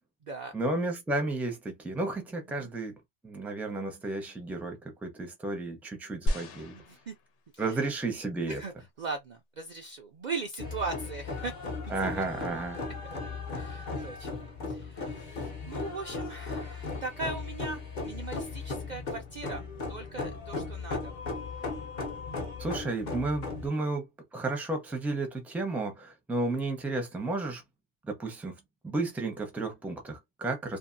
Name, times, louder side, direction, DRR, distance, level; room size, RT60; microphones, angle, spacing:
voice 1, 0.5-3.0 3.2-6.8 7.6-8.6 11.9-12.8 22.6-24.1 24.3-27.6 28.1-28.6 28.8-30.8, right 2 dB, ahead, 0.6 m, -32 dB
sound 1, 6.3-7.8 8.5-8.6, equal, 80° left, 1.0 m, -33 dB
voice 2, 6.7-7.1 7.5-7.8 8.5-8.7 9.0-11.5 12.1-12.2 12.5-12.6 13.5-19.6 19.9-21.1, right 3 dB, 55° right, 0.5 m, -39 dB
sound 2, 10.6-23.7, left 4 dB, 45° left, 0.8 m, -37 dB
2.7 x 2.6 x 2.5 m
omnidirectional pair, 1.2 m